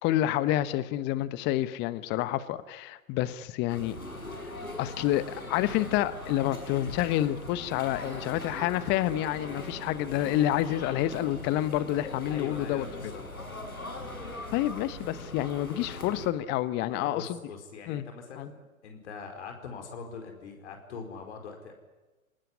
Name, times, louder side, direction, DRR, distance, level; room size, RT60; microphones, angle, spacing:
voice 1, 0.0-4.0 4.8-5.2 5.5-12.8 14.5-17.4 17.9-18.0 18.4-18.5, left 13 dB, 25° left, 15 dB, 1.1 m, -28 dB
sound 1, 3.7-16.3, left 2 dB, 90° left, 5.9 m, -41 dB
voice 2, 12.3-13.5 16.9-21.7, left 5 dB, 55° left, 4 dB, 4.8 m, -42 dB
27.0 x 19.5 x 9.8 m, 1.2 s
figure-of-eight pair, 115°, 42 cm